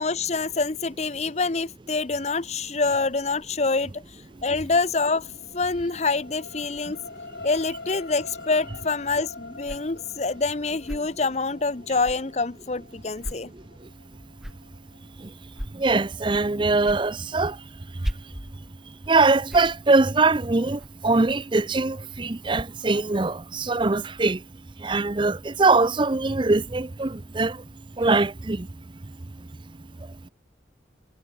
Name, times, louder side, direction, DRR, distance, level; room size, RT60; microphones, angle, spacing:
voice 1, 0.0-4.0 4.4-5.3 5.5-7.0 7.4-13.5 16.5-16.7, left 3 dB, 35° left, 0.7 m, -26 dB
sound 1, 4.2-16.8 17.3-17.4, left 3 dB, 60° left, 1.8 m, -45 dB
sound 2, 8.6-22.6, equal, ahead, 3.0 m, -41 dB
voice 2, 15.7-17.6 19.1-24.4 24.8-27.6 28.0-28.7, right 3 dB, 25° right, 0.5 m, -22 dB
head